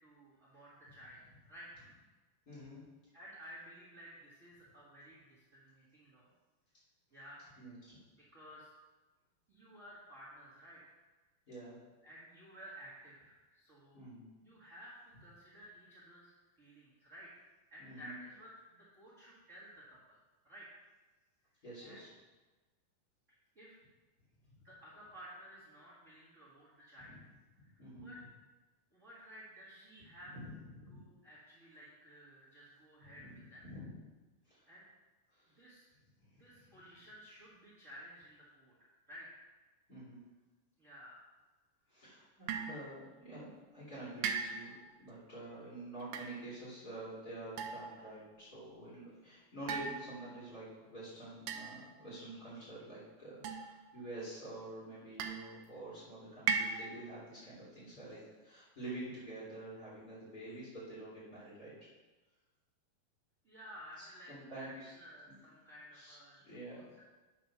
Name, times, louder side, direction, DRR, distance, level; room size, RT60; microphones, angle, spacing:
voice 1, 0.0-2.0 3.1-6.3 7.1-7.7 8.3-8.7 9.5-11.0 12.0-14.0 14.4-17.3 17.7-20.2 20.4-20.7 21.8-22.0 23.5-23.7 24.6-27.1 27.6-28.2 28.9-30.3 30.9-33.7 34.6-34.8 35.6-35.9 36.4-38.7 39.1-39.4 40.8-41.2 63.4-67.0, equal, 30° right, -9 dB, 1.4 m, -54 dB
voice 2, 2.4-2.8 7.6-8.0 11.5-11.8 13.9-14.2 17.8-18.1 21.6-22.1 27.8-28.1 30.3-31.0 33.2-33.4 33.6-33.9 34.5-34.6 36.3-36.7 39.9-40.2 41.9-43.5 43.7-44.7 45.0-61.7 64.3-64.9 65.9-66.1 66.4-66.8, right 1 dB, 25° left, -8 dB, 3.3 m, -48 dB
sound 1, 42.5-42.8 44.2-44.8 46.0-46.3 47.6-48.2 49.7-50.5 51.5-52.0 53.4-54.1 55.2-55.7 56.5-57.1, right 6 dB, 80° right, 2.0 m, -38 dB
9.2 x 4.5 x 6.0 m, 1.2 s
omnidirectional pair, 4.2 m